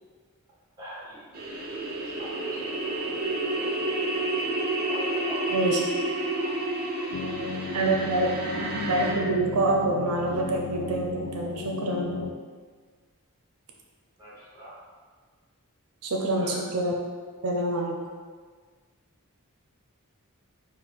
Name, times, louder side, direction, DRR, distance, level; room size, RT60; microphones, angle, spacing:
voice 1, 0.8-1.6 1.9-3.9 4.1-4.5 4.8-6.6 7.0-7.5 14.2-14.8 16.4-16.6, equal, 15° right, -8 dB, 1.3 m, -46 dB
sound 1, 1.3-9.1, right 2 dB, 45° right, 0.7 m, -30 dB
sound 2, 7.1-12.3, left 4 dB, 60° left, 0.3 m, -35 dB
voice 2, 7.7-12.1 16.0-16.9 17.4-18.0, right 2 dB, 85° right, 0 dB, 0.5 m, -26 dB
4.5 x 2.5 x 4.0 m, 1.6 s
head